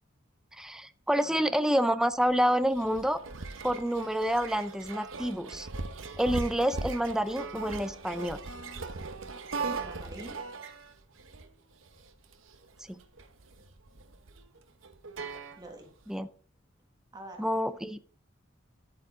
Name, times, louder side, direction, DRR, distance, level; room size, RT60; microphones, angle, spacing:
voice 1, 0.6-3.2 3.6-5.7 6.2-8.4 12.9-13.0 16.1-16.3 17.4-18.0, equal, 5° right, 11 dB, 0.5 m, -28 dB
voice 2, 1.2-1.6 9.8-10.4 15.6-15.9 17.1-17.5, right 1 dB, 20° right, 3 dB, 1.7 m, -46 dB
sound 1, 2.1-16.0, right 4 dB, 80° right, 1.0 m, -39 dB
11.0 x 8.5 x 3.7 m, 0.43 s
head